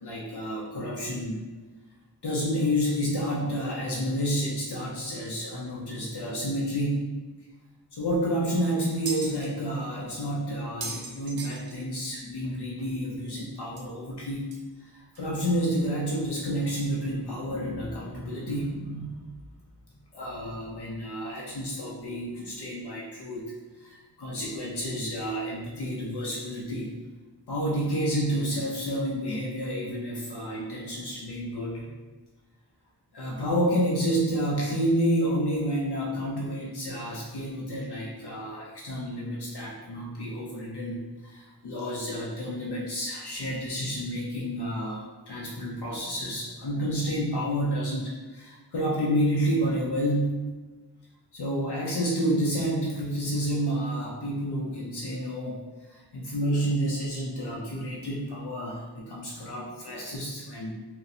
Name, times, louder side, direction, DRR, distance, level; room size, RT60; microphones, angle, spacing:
voice 1, 0.0-1.4 2.2-7.1 7.9-14.5 14.8-19.1 20.1-23.5 23.8-26.9 27.5-31.9 33.1-50.4 51.3-55.6 55.9-60.7, equal, 70° left, -4 dB, 0.6 m, -30 dB
sound 1, 8.1-8.2 8.5-9.5 10.1-10.2 10.5-12.1 12.4-12.5 12.8-12.9 13.8-13.9 14.5-14.6 15.2-15.3, right 3 dB, 65° right, 0.7 m, -38 dB
4.0 x 2.1 x 2.7 m, 1.3 s
wide cardioid pair, 65°, 41 cm